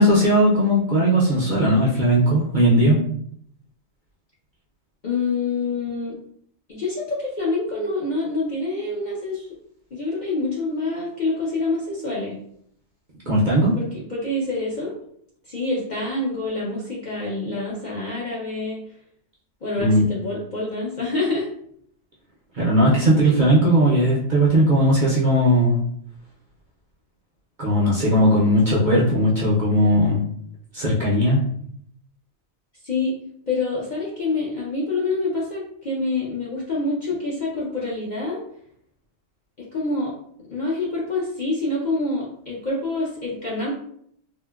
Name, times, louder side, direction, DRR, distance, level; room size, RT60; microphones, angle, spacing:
voice 1, 0.0-3.0 13.3-13.7 19.8-20.1 22.6-25.8 27.6-30.2 30.7-31.4, equal, 50° right, -5 dB, 0.6 m, -18 dB
voice 2, 5.0-6.2 6.7-9.5 9.9-12.4 13.8-15.0 15.4-18.8 19.6-21.5 32.8-33.1 33.5-38.4 39.7-40.1 40.5-43.7, left 3 dB, 50° left, -5 dB, 0.6 m, -26 dB
3.7 x 2.1 x 2.3 m, 0.66 s
omnidirectional pair, 1.3 m